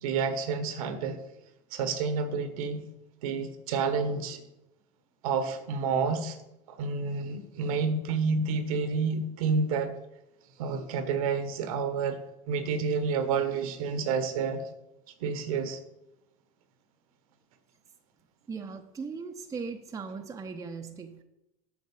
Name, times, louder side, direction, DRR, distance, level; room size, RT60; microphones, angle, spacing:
voice 1, 0.0-1.2 1.7-2.8 3.2-4.4 5.2-6.4 6.7-9.9 10.6-12.2 12.5-14.6 15.2-15.8, right 5 dB, 70° right, 11 dB, 1.1 m, -29 dB
voice 2, 18.5-21.2, right 5 dB, 20° right, 5 dB, 0.7 m, -38 dB
8.3 x 6.0 x 5.5 m, 0.89 s
hypercardioid pair, 85°, 19 cm